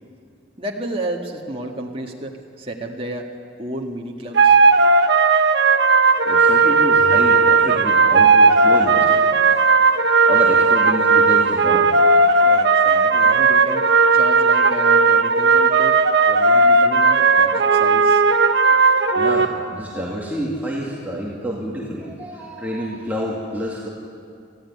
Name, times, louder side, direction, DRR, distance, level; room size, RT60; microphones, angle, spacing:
voice 1, 0.6-3.3 3.6-4.5 12.4-13.8 14.1-16.0 16.3-18.2, right 1 dB, 30° right, 0 dB, 1.9 m, -31 dB
sound 1, 4.3-19.5, right 4 dB, 65° right, 1.2 m, -15 dB
voice 2, 6.2-9.6 10.3-11.9 18.7-18.9 19.1-23.9, equal, 10° right, -4 dB, 2.4 m, -28 dB
26.0 x 16.0 x 9.8 m, 2.4 s
head